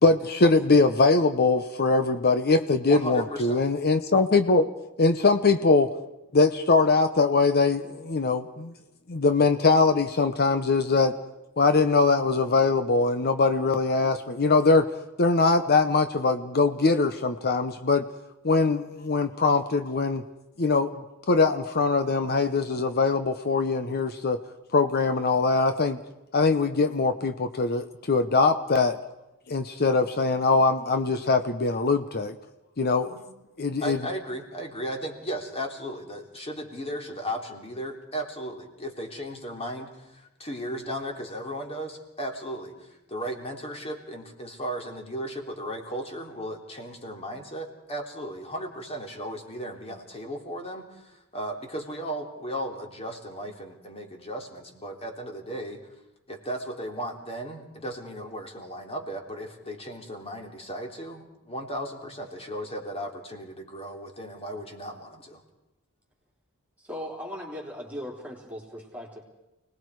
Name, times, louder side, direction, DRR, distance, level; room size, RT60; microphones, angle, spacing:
voice 1, 0.0-4.7 5.0-5.9 6.3-8.7 9.1-11.1 11.6-14.9 15.2-18.0 18.4-20.2 20.6-20.9 21.3-24.4 24.7-26.0 26.3-29.0 29.5-32.3 32.8-33.2 33.6-34.0, left 3 dB, 45° left, 9 dB, 0.9 m, -22 dB
voice 2, 2.9-3.6 33.1-33.2 33.8-55.8 56.3-65.4, equal, 25° left, 2 dB, 3.2 m, -36 dB
voice 3, 66.9-69.2, equal, 5° right, -3 dB, 3.4 m, -38 dB
29.5 x 19.5 x 4.8 m, 0.95 s
head